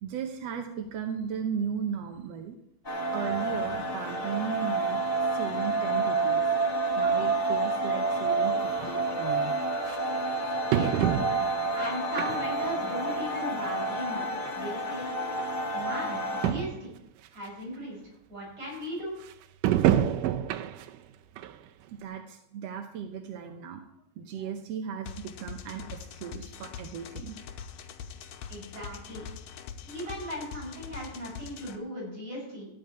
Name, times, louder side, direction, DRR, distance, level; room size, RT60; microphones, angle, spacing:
voice 1, 0.0-2.6 3.1-6.5 6.8-9.9 14.4-14.5 21.9-23.8 24.2-27.4, right 7 dB, 65° right, 5 dB, 1.7 m, -36 dB
sound 1, 2.8-16.5, right 3 dB, 25° left, 1.5 m, -29 dB
sound 2, 8.8-8.9 9.9-10.0 10.7-11.6 12.2-12.7 13.1-13.2 14.2-14.3 14.5-14.6 15.4-15.5 15.8-15.9 16.1-16.2 16.4-16.9 17.4-17.5 19.6-21.0 21.4-21.5 22.0-22.1, right 11 dB, 90° right, 2.3 m, -27 dB
voice 2, 10.7-11.1 11.7-15.2 15.7-16.9 17.3-18.0 18.3-19.1 28.5-29.2 29.8-32.7, equal, 40° right, -5 dB, 7.1 m, -37 dB
sound 3, 25.1-31.8, left 7 dB, 85° left, 2.6 m, -43 dB
14.0 x 5.3 x 9.3 m, 0.78 s
omnidirectional pair, 3.8 m